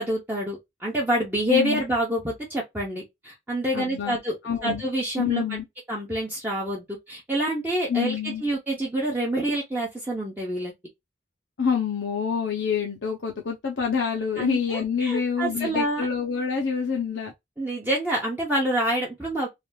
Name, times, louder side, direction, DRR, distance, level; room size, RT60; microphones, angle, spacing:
voice 1, 0.0-4.3 4.6-5.6 5.9-10.7 14.4-16.1 17.6-19.5, right 1 dB, 10° right, 0.8 m, -27 dB
voice 2, 1.5-1.8 3.7-4.2 4.4-4.8 5.2-5.7 7.9-8.4 11.6-17.3, left 6 dB, 75° left, 0.6 m, -26 dB
3.3 x 2.5 x 2.2 m
head